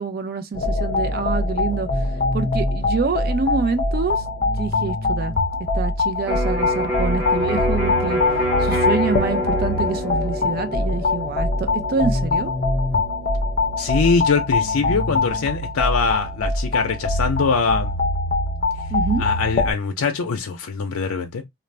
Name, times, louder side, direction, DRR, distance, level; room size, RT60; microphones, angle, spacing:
voice 1, 0.0-1.9 2.3-5.3 5.7-8.2 8.6-12.5 18.9-19.2, right 4 dB, 45° right, 0.4 m, -26 dB
sound 1, 0.5-19.7, left 2 dB, 35° left, 0.5 m, -23 dB
Electric guitar, 6.2-14.0, equal, 10° right, 0.7 m, -27 dB
voice 2, 13.8-17.9 19.2-21.4, left 5 dB, 85° left, 0.5 m, -22 dB
2.4 x 2.0 x 3.2 m
head